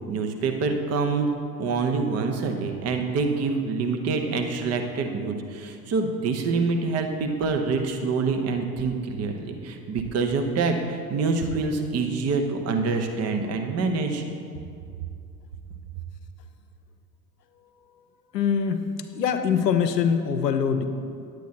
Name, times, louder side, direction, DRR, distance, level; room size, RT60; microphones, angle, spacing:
voice 1, 0.1-1.3 1.6-14.2, right 4 dB, 30° right, 5 dB, 1.0 m, -26 dB
voice 2, 18.3-18.9 19.1-20.8, left 7 dB, 80° left, 8 dB, 0.8 m, -23 dB
10.5 x 8.2 x 4.3 m, 2.4 s
figure-of-eight pair, 75°, 49 cm